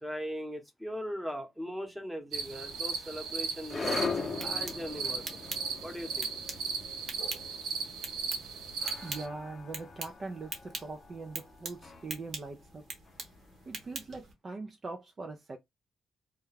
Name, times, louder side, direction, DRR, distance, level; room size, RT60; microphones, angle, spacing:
voice 1, 0.0-5.4 5.8-6.3, equal, 5° right, 0.9 m, -39 dB
sound 1, 2.3-9.3, right 5 dB, 85° right, 0.6 m, -37 dB
sound 2, 2.5-13.6, left 4 dB, 40° left, 0.5 m, -41 dB
sound 3, 4.2-14.3, right 4 dB, 60° right, 0.9 m, -45 dB
voice 2, 9.0-12.8 13.7-15.6, right 3 dB, 35° right, 0.4 m, -42 dB
2.3 x 2.2 x 3.1 m
cardioid pair, 90°, 0 cm